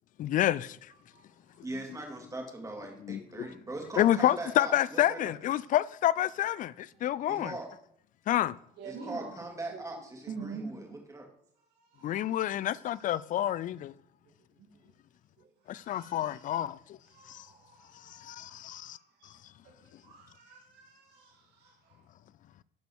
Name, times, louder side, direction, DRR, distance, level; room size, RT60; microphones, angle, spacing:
voice 1, 0.2-0.8 3.1-3.2 4.0-7.5 8.3-8.5 12.0-13.9 15.7-17.0 17.3-17.5 18.1-19.0, left 12 dB, 50° left, 0.4 m, -28 dB
voice 2, 1.6-5.3 7.3-7.7 8.8-11.3, right 2 dB, 20° right, 2.6 m, -40 dB
voice 3, 8.8-9.4 9.7-9.8 10.3-11.0 11.7-12.9 14.3-14.9 15.4-16.5 17.0-22.1, right 5 dB, 80° right, 1.7 m, -48 dB
11.5 x 5.3 x 4.6 m
cardioid pair, 110°, 17 cm